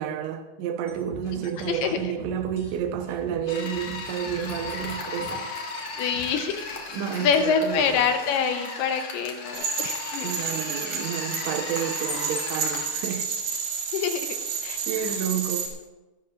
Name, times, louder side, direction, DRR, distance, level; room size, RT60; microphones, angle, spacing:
voice 1, 0.0-5.5 6.9-8.1 10.2-13.3 14.9-15.7, right 8 dB, 85° right, 3.2 m, -30 dB
sound 1, 0.9-8.4, left 1 dB, 20° left, 5.2 m, -44 dB
voice 2, 1.3-2.0 6.0-6.7 7.2-10.3 13.9-14.4 14.6-15.2, left 6 dB, 80° left, 2.5 m, -26 dB
sound 2, 3.5-12.9, left 3 dB, 50° left, 2.8 m, -36 dB
sound 3, 9.5-15.7, right 5 dB, 60° right, 3.3 m, -31 dB
23.5 x 12.5 x 2.4 m
omnidirectional pair, 5.1 m